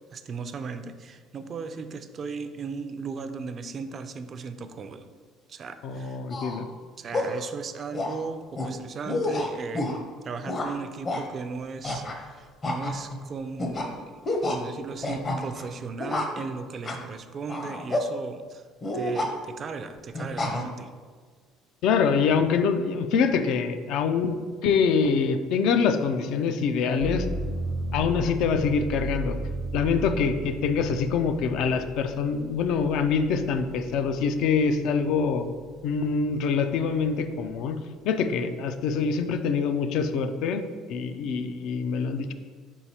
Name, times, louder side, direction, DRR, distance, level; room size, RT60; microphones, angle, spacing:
voice 1, 0.1-5.1 5.5-6.2 7.0-9.9 10.2-14.2 14.5-18.7 18.9-20.9, right 5 dB, 45° right, 9 dB, 0.3 m, -37 dB
voice 2, 5.8-6.7 21.8-24.4 24.6-27.3 27.9-29.4 29.7-35.5 35.8-37.8 38.0-40.6 40.9-42.3, left 5 dB, 75° left, 8 dB, 0.3 m, -25 dB
sound 1, 6.3-6.6 7.1-7.4 7.9-8.2 8.6-8.7 9.1-10.0 10.5-10.7 11.1-11.2 11.8-12.3 12.6-13.2 13.6-13.9 14.3-14.6 15.0-15.6 16.0-16.4 16.9-17.1 17.5-18.1 18.8-19.3 20.1-20.6, left 2 dB, 35° left, 0.6 m, -29 dB
sound 2, 27.0-34.8 35.3-36.1, right 2 dB, 75° right, 0.8 m, -35 dB
4.6 x 3.9 x 2.8 m, 1.5 s
supercardioid pair, 95°, 0 cm